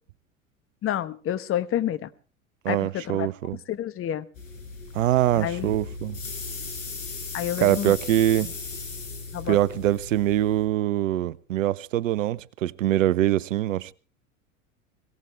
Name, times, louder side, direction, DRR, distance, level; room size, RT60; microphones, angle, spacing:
voice 1, 0.8-2.1 2.7-3.3 3.7-4.2 5.3-5.7 7.3-7.9 9.3-9.6, left 11 dB, 35° left, 1.2 m, -29 dB
voice 2, 2.6-3.6 4.9-6.2 7.6-8.5 9.5-13.9, right 13 dB, 65° right, 0.7 m, -23 dB
sound 1, 4.3-10.7, left 4 dB, 70° left, 5.2 m, -37 dB
22.5 x 16.5 x 3.4 m
figure-of-eight pair, 80°, 40 cm